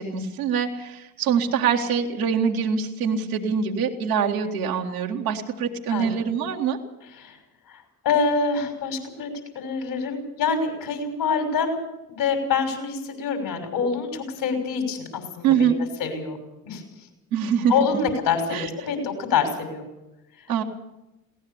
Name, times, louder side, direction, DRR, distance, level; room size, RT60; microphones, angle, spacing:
voice 1, 0.0-6.8 15.4-15.7 17.3-17.7 18.5-18.7 20.5-20.6, right 7 dB, 85° right, -1 dB, 2.0 m, -24 dB
voice 2, 7.7-9.3 9.5-11.8 12.2-15.7 16.0-16.4 16.6-16.8 17.7-19.8, left 5 dB, 65° left, 4 dB, 6.1 m, -26 dB
21.5 x 17.5 x 7.2 m, 0.92 s
hypercardioid pair, 50°, 43 cm